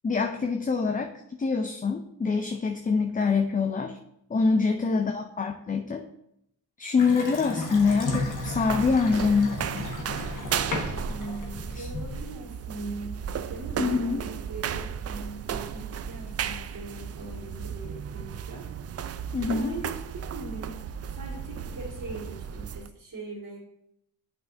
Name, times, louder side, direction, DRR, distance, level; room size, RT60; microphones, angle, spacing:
voice 1, 0.0-1.1 1.4-4.0 4.3-6.0 6.8-9.6 11.8-11.9 13.8-14.2 19.3-19.7, left 4 dB, 20° left, 5 dB, 0.5 m, -25 dB
voice 2, 4.7-5.1 11.1-13.2 13.5-18.7 19.4-19.9 20.3-23.6, right 2 dB, 55° right, -6 dB, 2.1 m, -40 dB
Water tap faucet / Sink (filling or washing) / Bathtub (filling or washing), 7.0-12.4, left 2 dB, 50° left, 1.5 m, -34 dB
sound 1, 7.7-22.9, right 8 dB, 40° right, 0.4 m, -35 dB
8.0 x 5.9 x 2.6 m, 0.78 s
cardioid pair, 65°, 40 cm